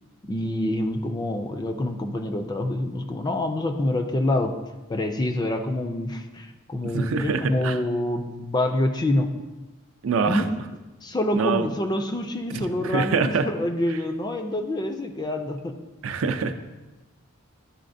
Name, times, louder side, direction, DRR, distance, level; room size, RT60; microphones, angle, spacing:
voice 1, 0.3-4.5 4.9-9.3 10.3-10.5 11.0-15.7, left 1 dB, 20° left, 6 dB, 0.4 m, -26 dB
voice 2, 6.9-7.8 10.0-10.4 11.3-11.7 12.5-13.5 16.0-16.6, right 4 dB, 65° right, 9 dB, 0.4 m, -25 dB
10.5 x 4.1 x 2.6 m, 1.1 s
head